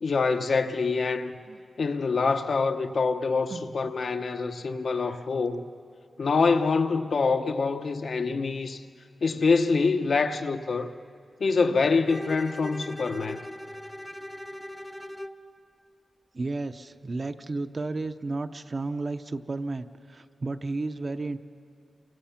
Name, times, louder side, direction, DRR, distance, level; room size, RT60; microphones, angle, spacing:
voice 1, 0.0-1.3 1.8-5.6 6.2-8.8 9.2-10.9 11.4-13.4, left 4 dB, 60° left, 0.9 m, -25 dB
voice 2, 3.5-3.9 5.0-5.2 16.3-21.4, right 3 dB, 35° right, 0.6 m, -33 dB
Bowed string instrument, 12.1-15.5, equal, 5° left, 0.6 m, -39 dB
28.5 x 24.0 x 5.8 m
wide cardioid pair, 165°, 0 cm